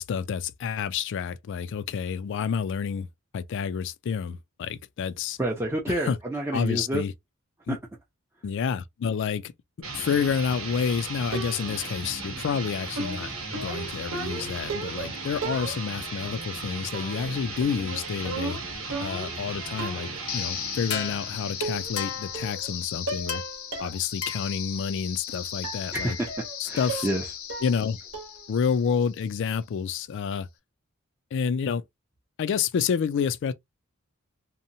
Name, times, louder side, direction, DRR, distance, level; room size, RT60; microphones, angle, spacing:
voice 1, 0.0-3.1 3.3-5.4 6.0-6.2 6.5-7.1 7.7-7.8 8.4-9.5 9.9-18.6 19.0-23.4 23.8-26.2 26.6-27.1 27.6-28.0 28.5-30.5 31.3-31.8 32.4-33.5, left 6 dB, 60° left, 0.3 m, -29 dB
voice 2, 5.4-7.0 7.7-7.8 25.9-26.3 26.7-27.3, right 1 dB, 10° right, 0.5 m, -28 dB
sound 1, 9.8-22.3, right 3 dB, 90° right, 1.0 m, -37 dB
sound 2, 11.3-11.9 13.0-15.1 15.4-16.1 16.9-17.3 17.6-19.4 19.8-20.2 21.1-21.2 21.6-22.1 22.3-22.7 23.1-23.4 23.7-24.0 24.4-24.5 25.6-25.9 26.3-26.6 26.9-27.2 27.5-27.9 28.1-28.5, right 3 dB, 65° right, 0.9 m, -35 dB
sound 3, 20.3-29.3, left 8 dB, 80° left, 0.7 m, -35 dB
2.8 x 2.1 x 2.6 m
head